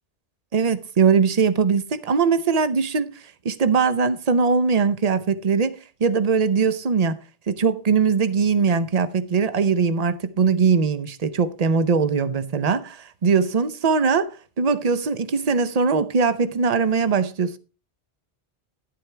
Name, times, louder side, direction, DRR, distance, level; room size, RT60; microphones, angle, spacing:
voice 1, 0.5-3.1 3.4-7.2 7.5-17.6, right 5 dB, 40° right, 0.7 m, -21 dB
11.5 x 10.0 x 3.3 m
omnidirectional pair, 1.2 m